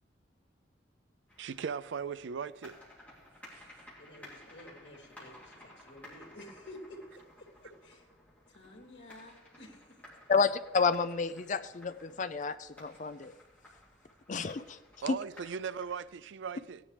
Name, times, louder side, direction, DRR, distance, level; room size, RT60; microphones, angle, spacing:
sound 1, 1.3-16.0, left 1 dB, 10° left, 2.9 m, -56 dB
voice 1, 1.4-2.8 3.5-3.6 15.0-16.8, right 6 dB, 75° right, 0.4 m, -38 dB
voice 2, 4.0-7.0 7.4-8.1 8.5-10.0, left 1 dB, 75° left, 2.8 m, -51 dB
voice 3, 10.3-13.3 14.3-14.8 15.1-15.2, left 5 dB, 40° left, 0.4 m, -30 dB
17.0 x 10.0 x 3.3 m
head